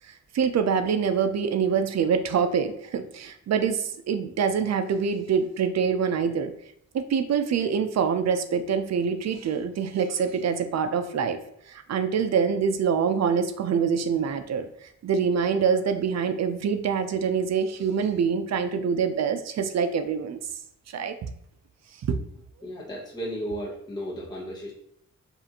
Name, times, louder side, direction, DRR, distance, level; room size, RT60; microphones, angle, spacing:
voice 1, 0.0-6.5 6.9-20.4 20.9-21.3 22.0-22.2, right 6 dB, 65° right, 9 dB, 0.5 m, -25 dB
voice 2, 22.6-24.7, equal, 15° left, -4 dB, 0.8 m, -34 dB
5.4 x 2.5 x 2.8 m, 0.72 s
wide cardioid pair, 150°, 29 cm